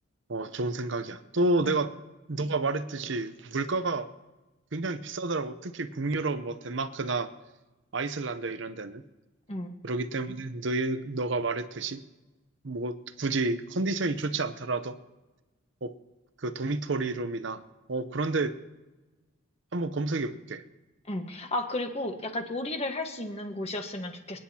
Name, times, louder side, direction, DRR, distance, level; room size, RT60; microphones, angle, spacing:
voice 1, 0.3-1.9 2.3-4.1 4.7-7.3 7.9-9.0 9.8-12.0 12.6-15.0 15.8-15.9 16.4-17.6 17.9-18.6 19.7-20.6, right 2 dB, 65° right, 11 dB, 0.8 m, -30 dB
voice 2, 21.1-24.4, left 1 dB, 30° left, 4 dB, 1.4 m, -33 dB
27.0 x 10.0 x 2.9 m, 1.1 s
head